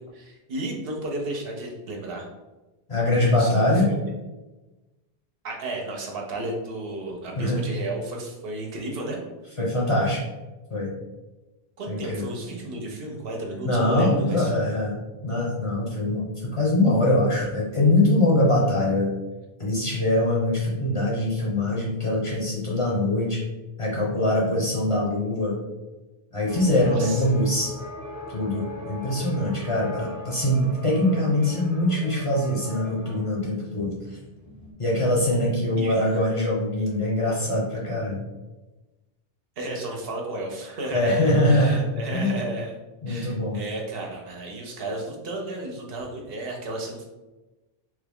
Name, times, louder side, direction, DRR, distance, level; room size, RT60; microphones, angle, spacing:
voice 1, 0.1-2.3 3.1-4.1 5.4-9.2 11.8-14.5 26.9-27.2 35.8-36.2 39.6-42.7 43.1-47.0, right 2 dB, 70° right, 0 dB, 0.9 m, -33 dB
voice 2, 2.9-3.9 7.4-7.6 9.6-10.2 10.7-10.9 11.9-12.3 13.6-15.0 15.2-19.1 19.6-23.4 23.8-25.6 26.3-27.7 28.3-34.2 34.8-38.3 40.9-42.4 43.0-43.6, left 1 dB, 35° left, -5 dB, 0.7 m, -23 dB
sound 1, 26.4-34.7, equal, 20° right, 0.8 m, -40 dB
3.2 x 2.3 x 3.4 m, 1.1 s
omnidirectional pair, 1.0 m